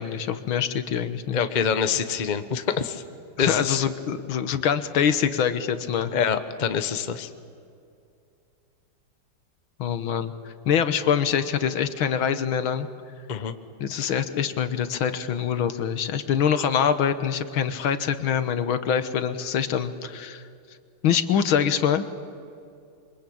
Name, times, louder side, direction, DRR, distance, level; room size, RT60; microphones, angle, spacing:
voice 1, 0.0-1.5 3.4-6.1 9.8-12.9 13.8-20.4 21.0-22.0, left 8 dB, 70° left, 11 dB, 2.0 m, -24 dB
voice 2, 1.3-3.0 3.4-3.8 6.1-7.3 13.3-13.5, left 7 dB, 30° left, 9 dB, 0.8 m, -25 dB
27.5 x 24.0 x 8.7 m, 2.5 s
omnidirectional pair, 2.3 m